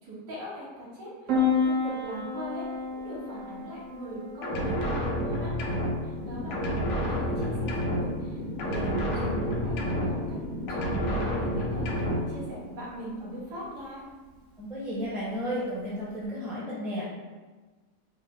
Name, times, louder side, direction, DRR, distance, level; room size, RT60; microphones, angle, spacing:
voice 1, 0.0-2.7 3.1-5.5 6.0-10.4 10.7-14.0, right 1 dB, 80° right, -7 dB, 1.8 m, -40 dB
Piano, 1.3-16.3, left 4 dB, 60° right, 1.0 m, -35 dB
sound 1, 4.4-6.2 6.5-8.3 8.6-10.4 10.7-12.4, equal, 60° left, 0.8 m, -30 dB
sound 2, 6.1-12.2, left 1 dB, 80° left, 1.5 m, -36 dB
voice 2, 14.6-17.0, equal, ahead, -7 dB, 0.6 m, -33 dB
4.3 x 2.0 x 3.6 m, 1.3 s
omnidirectional pair, 1.8 m